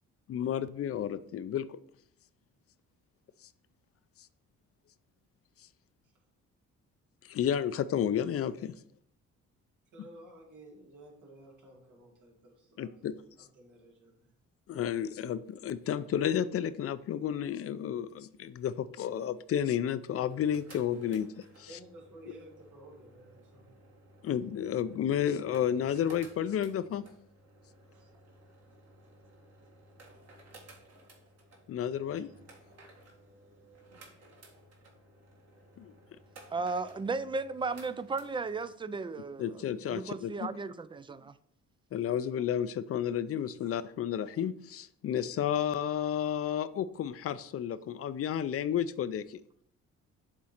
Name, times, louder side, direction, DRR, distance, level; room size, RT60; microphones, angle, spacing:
voice 1, 0.3-1.8 7.3-8.7 12.8-13.1 14.7-21.3 21.6-21.7 24.2-27.0 31.7-32.3 35.8-35.9 39.4-40.3 41.9-49.4, left 9 dB, 50° left, 0.4 m, -31 dB
voice 2, 9.9-14.3 21.7-23.8 27.9-28.1 30.1-30.3 32.1-32.3 43.6-43.8, right 1 dB, 80° right, 2.3 m, -54 dB
sound 1, 20.2-38.7, right 1 dB, 55° right, 1.7 m, -57 dB
voice 3, 36.5-39.6 39.9-41.3, right 4 dB, 15° right, 0.3 m, -35 dB
7.3 x 3.7 x 4.3 m
cardioid pair, 90°, 30 cm